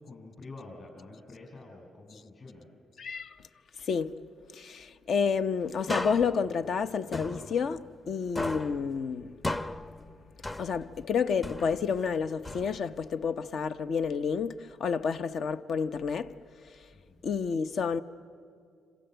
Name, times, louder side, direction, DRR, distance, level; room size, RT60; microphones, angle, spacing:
voice 1, 0.0-2.7 16.9-17.2, left 2 dB, 45° left, 7.0 m, -48 dB
voice 2, 3.0-3.4 3.8-4.1 4.5-9.3 10.6-16.3 17.2-18.0, left 6 dB, 60° left, 0.9 m, -30 dB
sound 1, 5.9-8.1 8.4-11.0 11.4-13.1, left 2 dB, 20° left, 0.9 m, -37 dB
27.0 x 27.0 x 8.0 m
cardioid pair, 90°, 0 cm